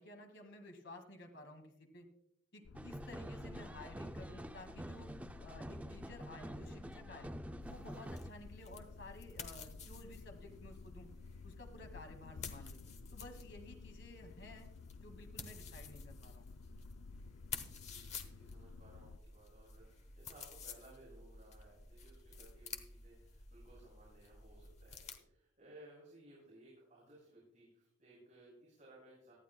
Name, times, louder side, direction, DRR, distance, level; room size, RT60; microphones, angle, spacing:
voice 1, 0.0-2.1 2.5-5.1 5.4-7.3 7.7-11.1 11.4-12.8 13.1-14.7 15.0-16.5, left 1 dB, 60° left, 4 dB, 2.0 m, -54 dB
sound 1, 2.6-19.2, left 4 dB, 85° left, 0.4 m, -54 dB
sound 2, 2.7-8.3, right 1 dB, 5° right, 0.3 m, -47 dB
sound 3, 7.6-25.2, left 5 dB, 35° left, 1.0 m, -52 dB
voice 2, 17.8-29.3, right 1 dB, 40° right, -6 dB, 5.7 m, -60 dB
18.5 x 13.0 x 2.2 m, 0.75 s
head